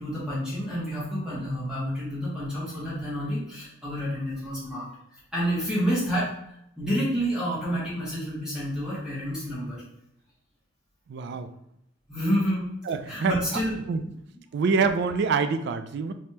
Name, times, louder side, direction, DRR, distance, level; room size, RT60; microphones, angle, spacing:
voice 1, 0.0-4.9 5.3-6.3 6.8-9.8 12.1-12.7 13.1-13.7 14.0-14.1, equal, 5° right, -10 dB, 1.3 m, -29 dB
voice 2, 11.1-11.5 12.9-13.4 13.9-14.0 14.5-16.1, right 5 dB, 55° right, 9 dB, 0.3 m, -25 dB
3.5 x 3.0 x 2.7 m, 0.78 s
head